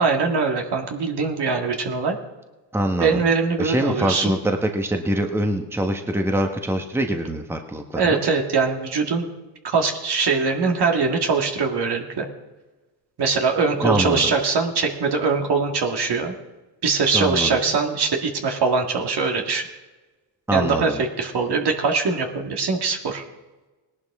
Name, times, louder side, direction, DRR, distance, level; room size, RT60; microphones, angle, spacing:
voice 1, 0.0-2.2 3.0-4.4 7.9-9.3 9.6-12.3 13.2-16.3 16.8-19.7 20.5-23.2, right 4 dB, 55° right, 3 dB, 2.0 m, -22 dB
voice 2, 2.7-3.2 3.6-8.2 13.8-14.3 17.1-17.6 20.5-21.0, right 1 dB, 5° right, 4 dB, 1.3 m, -24 dB
18.0 x 11.0 x 3.7 m, 1.2 s
supercardioid pair, 65°, 47 cm